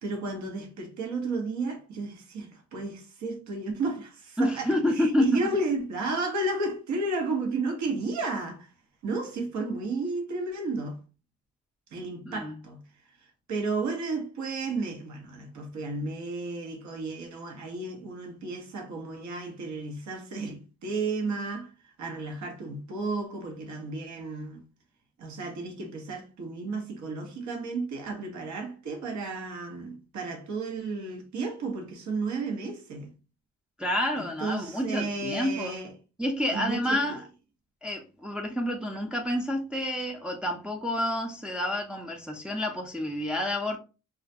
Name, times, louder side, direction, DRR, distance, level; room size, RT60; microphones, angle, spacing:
voice 1, 0.0-8.7 9.0-11.0 11.9-12.8 13.5-21.7 22.0-24.6 25.2-33.1 34.1-35.9 36.5-37.2, right 3 dB, 70° right, 0.9 m, -33 dB
voice 2, 4.4-5.3 12.3-12.5 33.8-35.7 36.2-37.2 37.8-43.8, left 1 dB, 5° right, 0.4 m, -29 dB
2.4 x 2.1 x 2.6 m
cardioid pair, 90°, 30 cm